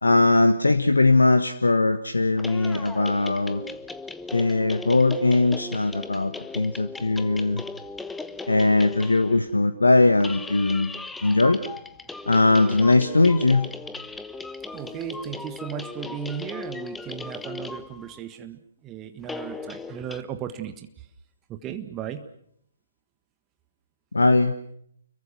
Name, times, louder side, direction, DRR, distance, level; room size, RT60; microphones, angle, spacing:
voice 1, 0.0-3.6 4.3-7.6 8.5-10.9 11.2-11.6 12.3-13.7 24.1-24.5, left 2 dB, 70° left, 9 dB, 1.4 m, -20 dB
sound 1, 2.4-9.5 10.1-18.2 19.2-20.2, left 3 dB, 5° left, 1.0 m, -38 dB
voice 2, 14.7-21.1 21.5-22.2, right 8 dB, 20° right, 8 dB, 1.6 m, -36 dB
29.5 x 23.0 x 6.0 m, 0.68 s
figure-of-eight pair, 130°, 0 cm